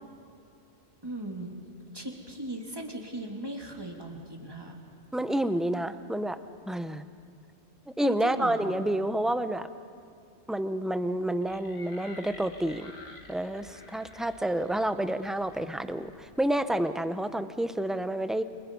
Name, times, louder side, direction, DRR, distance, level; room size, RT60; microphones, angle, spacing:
voice 1, 1.0-1.6 1.9-4.8 8.0-8.7, right 1 dB, 20° right, 1 dB, 2.7 m, -38 dB
voice 2, 5.1-6.4 6.7-7.0 8.0-9.7 10.5-12.9 13.3-18.4, right 1 dB, ahead, 10 dB, 0.6 m, -29 dB
sound 1, 11.4-16.7, left 2 dB, 50° left, 2.0 m, -51 dB
29.5 x 26.0 x 5.4 m, 2.5 s
omnidirectional pair, 1.1 m